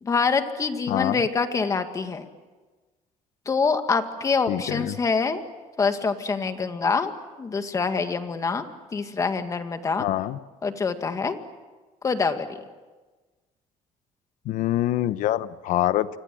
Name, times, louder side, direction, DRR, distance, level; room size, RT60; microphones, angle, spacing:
voice 1, 0.0-2.2 3.5-5.4 5.8-7.1 7.4-8.7 8.9-10.1 10.6-11.4 12.0-12.5, left 5 dB, 25° left, 7 dB, 2.0 m, -25 dB
voice 2, 0.9-1.2 4.5-5.0 10.0-10.4 14.4-16.1, left 14 dB, 70° left, 14 dB, 1.0 m, -25 dB
29.0 x 25.5 x 7.7 m, 1.3 s
cardioid pair, 150°, 14 cm